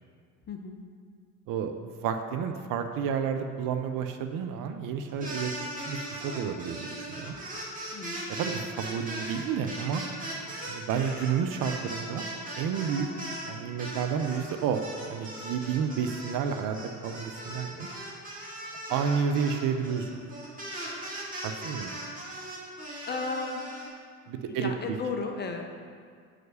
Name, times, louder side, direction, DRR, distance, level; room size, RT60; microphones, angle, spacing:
voice 1, 0.5-0.8 7.9-8.2 23.1-23.6 24.5-25.6, left 4 dB, 20° left, 4 dB, 0.7 m, -34 dB
voice 2, 1.5-5.5 5.9-7.3 8.4-10.0 10.7-12.2 12.6-13.1 13.5-14.8 15.1-16.8 17.0-17.9 18.9-20.1 21.4-21.9 24.3-25.0, right 7 dB, 45° right, 7 dB, 0.7 m, -30 dB
sound 1, 5.1-13.5 13.8-23.9, right 1 dB, 15° right, 2.2 m, -39 dB
6.0 x 4.9 x 6.6 m, 2.1 s
hypercardioid pair, 70°, 48 cm